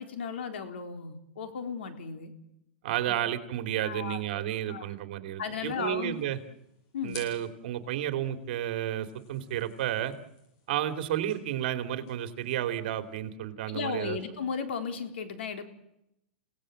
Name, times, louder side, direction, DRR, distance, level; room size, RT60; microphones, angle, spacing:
voice 1, 0.0-2.3 3.1-3.2 3.8-4.9 5.4-6.2 6.9-7.2 13.7-15.6, left 6 dB, 85° left, 7 dB, 3.8 m, -35 dB
voice 2, 2.8-6.4 7.0-10.1 10.7-14.2, right 11 dB, 55° right, 9 dB, 2.5 m, -32 dB
sound 1, 5.7-13.3, left 4 dB, 45° left, 7.7 m, -55 dB
29.5 x 18.0 x 7.6 m, 0.82 s
supercardioid pair, 155°, 6 cm